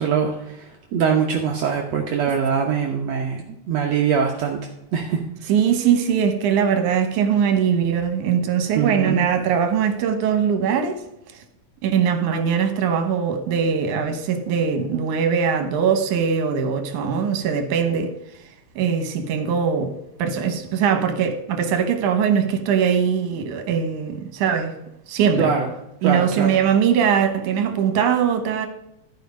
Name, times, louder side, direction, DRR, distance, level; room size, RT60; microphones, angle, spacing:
voice 1, 0.0-4.6 4.9-5.2 8.8-9.2 25.4-25.7 26.0-26.6, right 6 dB, 65° right, 2.1 m, -23 dB
voice 2, 5.5-11.0 11.8-18.1 18.8-24.8 25.1-25.5 26.0-28.7, right 7 dB, 85° right, 2.6 m, -21 dB
13.0 x 5.1 x 5.2 m
omnidirectional pair, 3.4 m